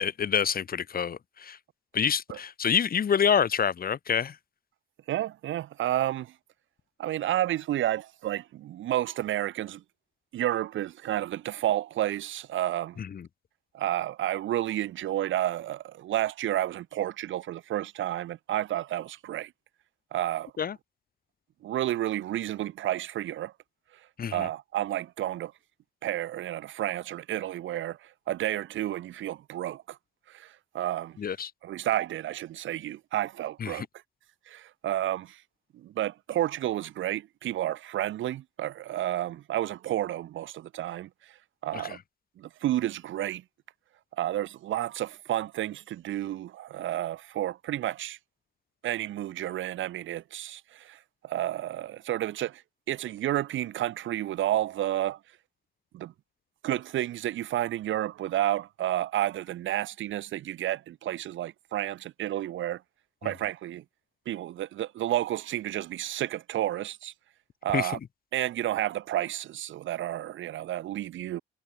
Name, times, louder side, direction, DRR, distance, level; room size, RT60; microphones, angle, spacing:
voice 1, 0.0-1.6 1.9-4.4 13.0-13.3 20.6-20.8 24.2-24.5 31.2-31.5 33.6-33.9 41.7-42.0 67.7-67.9, left 7 dB, 50° left, 2.1 m, -27 dB
voice 2, 5.1-6.3 7.0-9.8 10.3-13.0 13.7-19.5 20.1-20.5 21.6-23.5 24.3-25.5 26.0-30.0 30.3-31.2 31.6-33.9 34.5-35.4 35.7-41.1 41.6-42.0 42.4-43.4 44.2-48.2 48.8-52.6 52.9-55.2 55.9-56.1 56.6-62.8 63.2-63.8 64.3-67.1 67.6-68.0 68.3-71.4, right 13 dB, 75° right, 1.4 m, -31 dB
cardioid pair, 90°, 20 cm